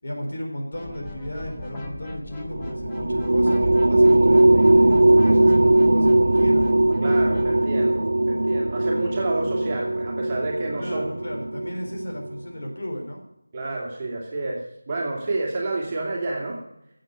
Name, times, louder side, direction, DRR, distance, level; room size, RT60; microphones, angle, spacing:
voice 1, 0.0-6.7 10.8-13.2, equal, 55° left, 1 dB, 4.2 m, -34 dB
sound 1, 0.7-7.6, left 1 dB, 10° left, 1.4 m, -37 dB
sound 2, 2.5-12.3, right 1 dB, 60° right, 1.4 m, -19 dB
voice 2, 7.0-11.2 13.5-16.6, right 2 dB, 20° right, -3 dB, 2.6 m, -29 dB
12.5 x 7.7 x 9.7 m, 0.81 s
figure-of-eight pair, 170°, 0 cm